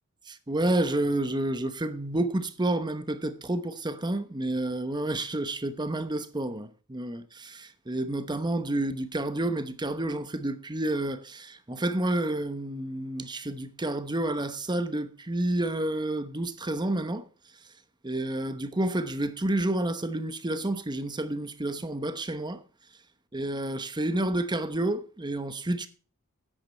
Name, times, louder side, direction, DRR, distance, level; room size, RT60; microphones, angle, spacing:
voice 1, 0.3-17.3 18.0-22.6 23.3-25.9, right 1 dB, 20° right, 0.9 m, -30 dB
10.0 x 8.6 x 4.5 m
head